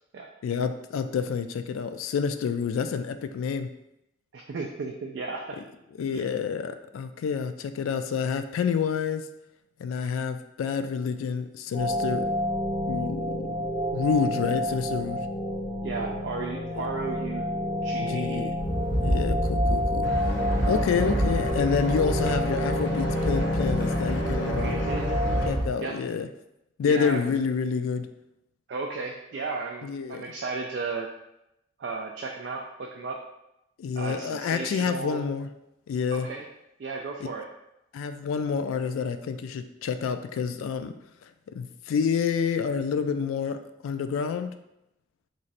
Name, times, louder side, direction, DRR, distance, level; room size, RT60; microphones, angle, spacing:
voice 1, 0.4-3.7 6.0-9.2 9.8-12.2 12.9-13.5 13.9-15.2 16.7-16.8 18.0-18.6 19.0-20.1 20.7-24.7 25.5-26.3 26.8-28.1 29.8-30.2 33.8-35.5 35.9-36.3 37.2-37.3 37.9-40.9 41.5-44.5, left 6 dB, 90° left, 10 dB, 0.3 m, -28 dB
voice 2, 4.3-5.6 6.1-6.3 15.8-17.5 17.8-18.5 24.6-25.0 25.8-26.0 26.8-27.2 28.7-31.1 31.8-33.2 33.9-35.3 36.1-36.5 36.8-37.5, right 4 dB, 55° right, 1 dB, 0.3 m, -34 dB
sound 1, 11.7-25.5, left 1 dB, 35° left, 0.8 m, -29 dB
sound 2, 18.6-25.7, equal, 30° right, 0.7 m, -29 dB
sound 3, 20.0-25.6, left 1 dB, 65° left, 0.7 m, -33 dB
3.1 x 2.5 x 4.0 m, 0.86 s
head